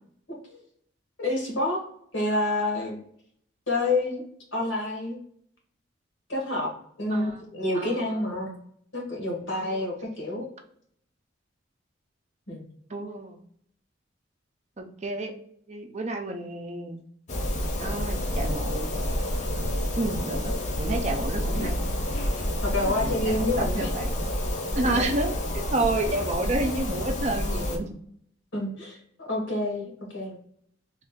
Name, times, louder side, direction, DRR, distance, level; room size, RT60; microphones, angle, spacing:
voice 1, 1.2-1.8 2.1-3.0 3.7-4.2 4.5-5.2 6.3-6.7 7.0-8.6 8.9-10.5 12.5-12.7 21.5-21.7 22.6-23.9 24.9-25.1 28.5-30.4, left 2 dB, 85° left, -2 dB, 1.4 m, -28 dB
voice 2, 7.1-7.5 7.7-8.0 9.5-9.8 12.9-13.4 14.8-15.3 15.7-17.0 17.8-18.9 20.0-21.8 22.8-24.1 24.8-25.3 25.7-27.9, right 2 dB, 35° right, 4 dB, 0.5 m, -30 dB
sound 1, 17.3-27.8, left 1 dB, 35° left, 0.5 m, -29 dB
3.1 x 2.4 x 3.6 m, 0.66 s
head